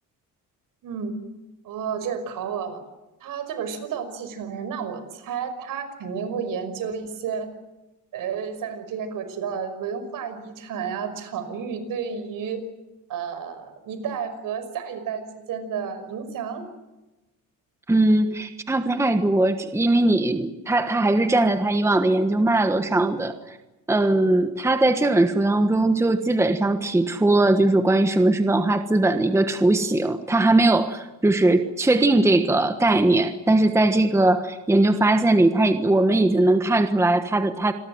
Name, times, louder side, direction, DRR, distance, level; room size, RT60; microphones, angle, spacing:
voice 1, 0.8-1.1 1.6-2.8 3.2-7.5 8.1-12.6 13.1-16.6 26.8-26.9, right 6 dB, 65° right, 10 dB, 5.6 m, -31 dB
voice 2, 17.9-23.6 23.9-37.7, right 2 dB, 10° right, 8 dB, 1.3 m, -20 dB
27.5 x 21.5 x 7.8 m, 1.1 s
cardioid pair, 155°, 36 cm